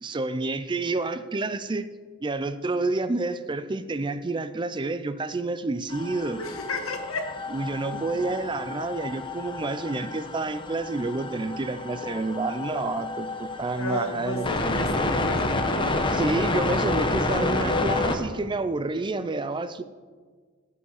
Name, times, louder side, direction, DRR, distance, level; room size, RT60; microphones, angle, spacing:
voice 1, 0.0-1.9 2.2-6.4 7.5-14.5 16.1-19.8, right 3 dB, 20° right, 12 dB, 0.4 m, -29 dB
sound 1, 5.9-18.2, left 2 dB, 25° left, 0.9 m, -29 dB
voice 2, 6.4-7.3 13.8-16.0, left 2 dB, 80° left, 5 dB, 1.6 m, -32 dB
16.5 x 5.6 x 6.4 m, 1.5 s
head